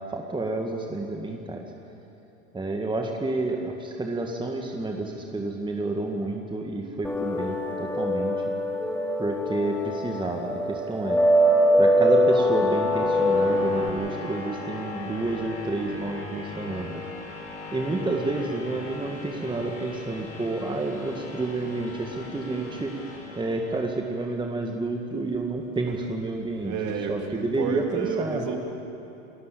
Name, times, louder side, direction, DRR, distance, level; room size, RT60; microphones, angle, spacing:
voice 1, 0.1-1.7 2.5-8.4 9.2-11.2 11.8-17.0 17.7-22.9 23.4-26.8 27.1-28.4, right 2 dB, 10° right, 2 dB, 1.8 m, -29 dB
sound 1, 7.0-13.9, equal, 5° left, 3.5 m, -23 dB
sound 2, 11.4-24.3, left 3 dB, 80° left, 4.1 m, -39 dB
voice 2, 26.6-28.6, right 6 dB, 45° right, 2 dB, 3.2 m, -31 dB
27.5 x 13.5 x 8.5 m, 2.9 s
hypercardioid pair, 85°, 43 cm